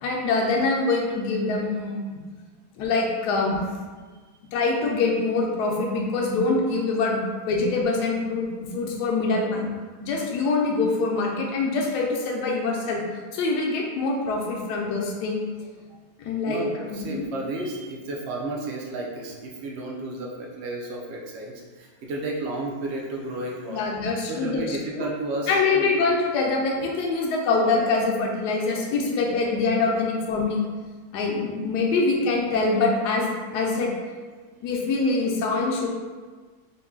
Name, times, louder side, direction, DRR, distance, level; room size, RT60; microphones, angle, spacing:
voice 1, 0.0-2.2 2.8-3.6 4.5-8.5 8.7-9.7 10.0-13.0 13.3-15.4 16.2-16.6 16.9-17.3 23.7-25.1 25.5-30.6 31.1-33.9 34.6-35.9, left 3 dB, 75° left, -1 dB, 1.2 m, -24 dB
voice 2, 16.5-23.9 24.3-25.9, right 2 dB, 90° right, -2 dB, 0.5 m, -32 dB
3.8 x 2.2 x 3.6 m, 1.4 s
omnidirectional pair, 1.8 m